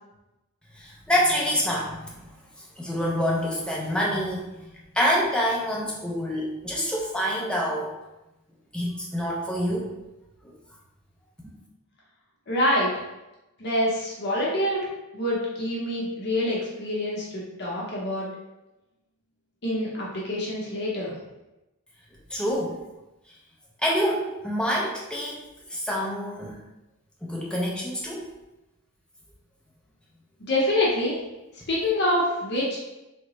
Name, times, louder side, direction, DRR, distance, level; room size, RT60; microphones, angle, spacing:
voice 1, 0.8-2.2 2.8-4.4 4.9-7.9 8.7-9.9 10.4-10.5 22.3-22.8 23.8-25.4 25.7-26.6 27.2-28.3, equal, 5° left, -4 dB, 0.4 m, -26 dB
voice 2, 12.5-12.9 13.6-14.9 15.1-18.3 19.6-21.1 30.5-31.2 31.7-32.8, left 1 dB, 50° left, -5 dB, 0.7 m, -26 dB
3.7 x 2.1 x 3.0 m, 0.99 s
head